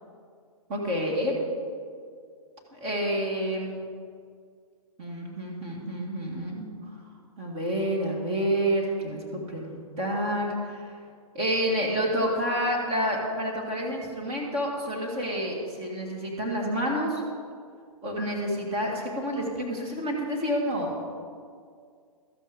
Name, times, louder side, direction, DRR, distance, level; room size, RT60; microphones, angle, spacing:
voice 1, 0.7-1.4 2.7-3.8 5.0-7.0 7.4-10.9 11.3-17.2 18.0-20.9, equal, 30° right, -1 dB, 2.0 m, -29 dB
13.0 x 7.7 x 5.1 m, 2.1 s
hypercardioid pair, 140°, 19 cm